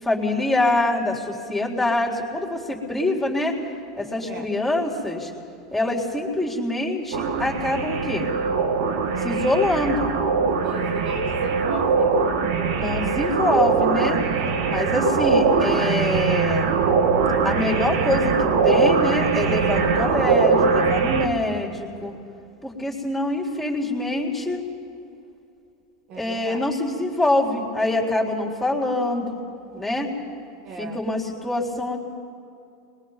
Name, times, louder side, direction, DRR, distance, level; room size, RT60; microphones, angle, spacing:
voice 1, 0.0-3.6 4.0-5.3 5.7-8.3 9.2-10.1 12.8-14.2 14.7-16.7 17.4-22.1 22.6-24.6 26.2-29.4 29.7-30.1 30.8-32.0, left 2 dB, 5° left, -3 dB, 3.9 m, -25 dB
sound 1, 7.1-21.3, right 5 dB, 70° right, 1.6 m, -21 dB
voice 2, 10.6-12.3 26.1-26.6 30.6-31.0, right 4 dB, 45° right, 3 dB, 1.5 m, -36 dB
30.0 x 21.5 x 4.1 m, 2.7 s
hypercardioid pair, 95°, 2 cm